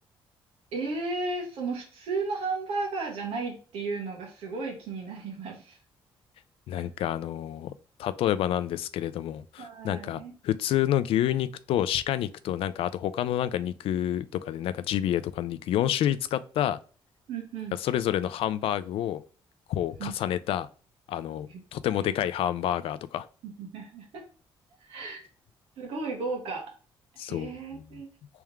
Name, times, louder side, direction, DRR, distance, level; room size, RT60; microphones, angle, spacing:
voice 1, 0.7-5.8 6.7-6.8 9.6-10.3 17.3-17.8 20.0-20.1 21.5-21.6 21.9-22.1 23.6-24.2 24.8-25.2 25.8-26.7 27.2-28.1, right 3 dB, 90° right, 1.5 m, -34 dB
voice 2, 6.7-7.7 8.0-16.8 17.8-19.2 19.7-20.7 21.1-23.3 27.2-27.8, left 11 dB, 75° left, 0.4 m, -28 dB
3.5 x 3.4 x 3.1 m
cardioid pair, 135°, 10 cm